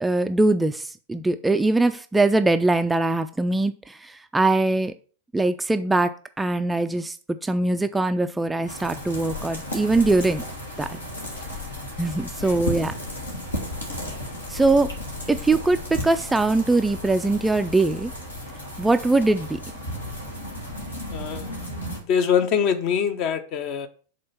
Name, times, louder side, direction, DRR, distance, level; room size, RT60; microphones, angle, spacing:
voice 1, 0.0-4.9 5.3-7.2 7.4-10.4 10.8-11.0 12.0-13.0 14.5-14.9 15.3-18.1 18.8-19.6, right 2 dB, 10° right, 0.3 m, -22 dB
sound 1, 8.7-22.0, left 1 dB, 80° left, 1.7 m, -34 dB
voice 2, 12.1-12.6 21.1-23.9, left 7 dB, 40° left, 0.7 m, -25 dB
5.3 x 3.9 x 5.6 m
figure-of-eight pair, 90°, 0 cm